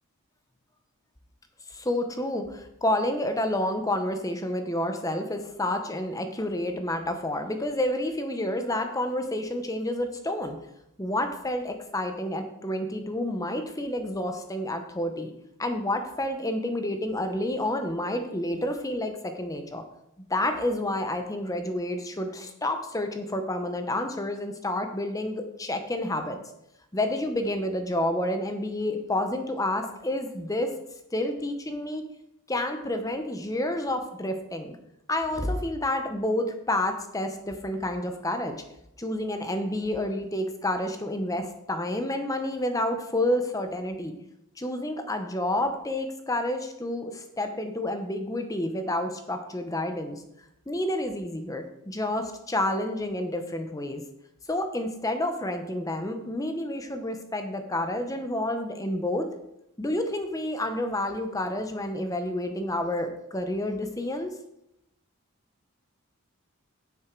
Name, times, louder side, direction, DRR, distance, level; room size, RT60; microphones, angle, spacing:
voice 1, 1.7-10.6 11.0-15.3 15.6-19.8 20.3-26.4 26.9-30.7 31.1-32.0 32.5-34.7 35.1-38.6 39.0-44.1 44.6-50.2 50.7-54.0 54.5-59.3 59.8-64.3, left 1 dB, 15° left, 6 dB, 0.8 m, -29 dB
9.8 x 8.0 x 4.6 m, 0.82 s
head